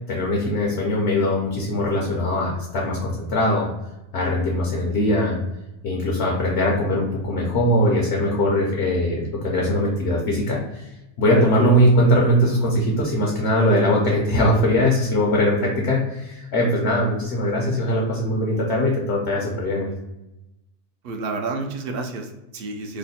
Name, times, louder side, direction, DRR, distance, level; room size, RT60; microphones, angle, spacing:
voice 1, 0.1-3.7 4.1-5.4 5.8-10.8 11.2-19.9, left 1 dB, 65° left, -2 dB, 1.0 m, -21 dB
voice 2, 21.0-23.0, right 3 dB, 60° right, 4 dB, 0.7 m, -30 dB
3.2 x 2.1 x 4.0 m, 0.94 s
omnidirectional pair, 1.3 m